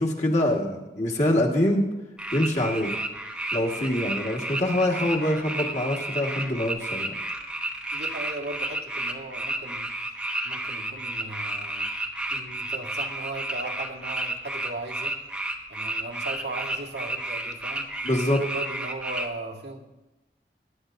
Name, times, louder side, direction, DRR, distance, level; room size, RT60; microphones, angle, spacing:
voice 1, 0.0-1.9 2.3-2.9 3.5-7.1 18.0-18.4, left 1 dB, 40° left, -1 dB, 1.6 m, -24 dB
sound 1, 2.2-19.3, right 1 dB, 5° right, 0.8 m, -32 dB
voice 2, 7.9-9.9 10.4-11.9 12.3-15.2 15.7-17.9 18.3-19.9, right 2 dB, 85° right, -1 dB, 1.7 m, -37 dB
21.0 x 10.5 x 2.6 m, 1.0 s
head